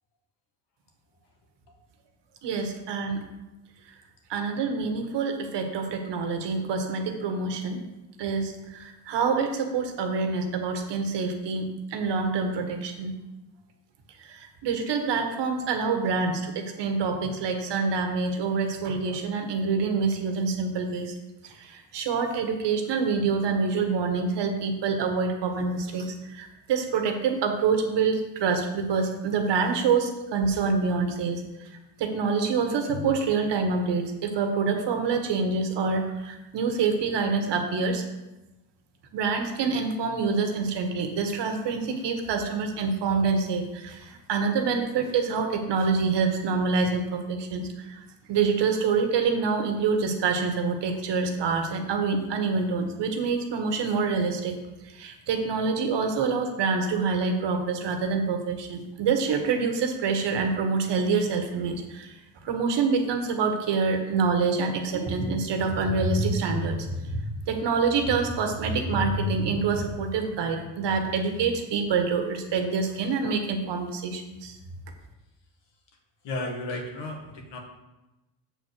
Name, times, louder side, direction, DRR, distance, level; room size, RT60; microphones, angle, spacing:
voice 1, 2.4-3.2 4.3-7.8 8.2-13.1 14.2-21.1 21.4-31.7 32.0-38.0 39.1-48.0 48.3-54.5 54.8-62.1 62.4-74.6, right 4 dB, 65° right, 4 dB, 1.6 m, -26 dB
voice 2, 76.2-77.6, left 2 dB, 65° left, 2 dB, 2.1 m, -34 dB
7.6 x 4.6 x 6.6 m, 1.0 s
cardioid pair, 90°, 45 cm